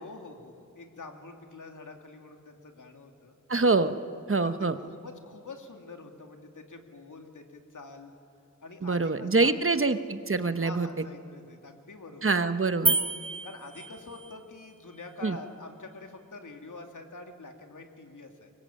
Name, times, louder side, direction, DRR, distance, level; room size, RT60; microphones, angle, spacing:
voice 1, 0.0-3.4 4.4-8.1 8.6-9.6 10.6-12.4 13.4-18.5, left 3 dB, 80° left, 4 dB, 2.7 m, -46 dB
voice 2, 3.5-4.0 4.3-4.8 8.8-10.9 12.2-13.0 15.2-15.3, right 3 dB, 45° right, 10 dB, 1.1 m, -25 dB
sound 1, 12.9-14.4, right 3 dB, 20° right, 0.7 m, -29 dB
25.5 x 22.5 x 8.7 m, 2.6 s
wide cardioid pair, 90°, 31 cm